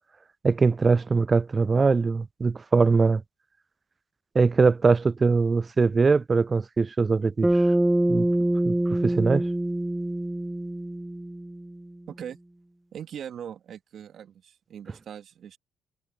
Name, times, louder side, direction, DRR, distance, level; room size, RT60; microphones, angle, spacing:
voice 1, 0.4-3.2 4.3-7.6 8.1-8.3 8.7-9.4, right 4 dB, 35° right, 0.5 m, -22 dB
Bass guitar, 7.4-11.8, right 1 dB, 10° right, 1.0 m, -25 dB
voice 2, 12.1-12.4 12.9-15.6, right 9 dB, 60° right, 2.5 m, -40 dB
hypercardioid pair, 55°, 0 cm